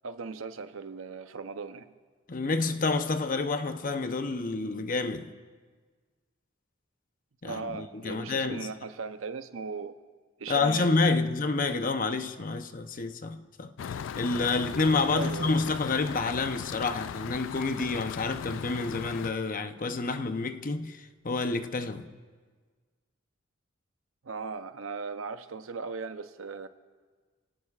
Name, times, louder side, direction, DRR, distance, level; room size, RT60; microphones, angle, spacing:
voice 1, 0.0-1.9 7.4-10.0 10.4-11.2 15.1-15.6 24.2-26.7, right 4 dB, 85° right, 0.7 m, -38 dB
voice 2, 2.3-5.3 7.4-8.7 10.5-22.1, left 3 dB, 45° left, 0.8 m, -29 dB
sound 1, 13.8-19.3, left 7 dB, 65° left, 0.3 m, -38 dB
29.5 x 17.5 x 2.5 m
head